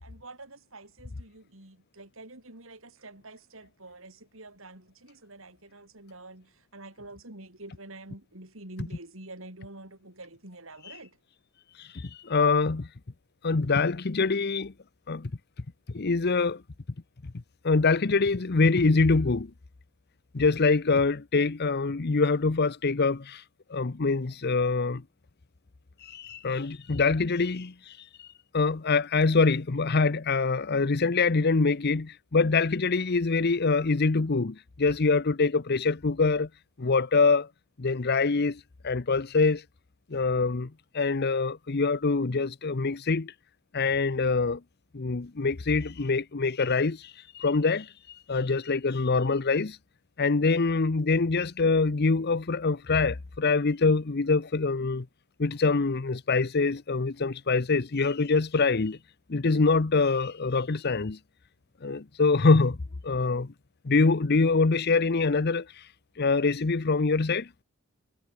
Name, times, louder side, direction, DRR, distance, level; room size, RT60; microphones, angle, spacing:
voice 1, 0.0-11.1, right 2 dB, 65° right, 5.8 m, -47 dB
voice 2, 11.8-12.9 13.4-14.7 15.1-15.3 15.9-16.6 17.6-19.5 20.3-23.4 23.7-25.0 26.0-28.3 28.5-36.5 36.8-37.5 37.8-39.6 40.1-43.3 43.7-44.6 44.9-49.8 50.2-55.1 55.4-59.0 59.3-61.2 61.8-62.8 63.0-63.5 63.8-65.8 66.2-67.5, left 4 dB, 50° left, 0.8 m, -25 dB
head